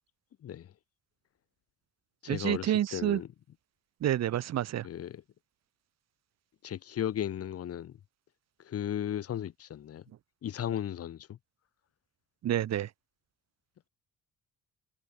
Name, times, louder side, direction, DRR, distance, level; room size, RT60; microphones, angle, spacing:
voice 1, 0.4-0.7 2.2-3.3 4.8-5.2 6.6-8.0 8.6-10.0 10.4-11.4, left 10 dB, 55° left, 0.9 m, -35 dB
voice 2, 2.3-3.2 4.0-4.9 12.4-12.9, right 12 dB, 60° right, 0.9 m, -29 dB
cardioid pair, 90°, 30 cm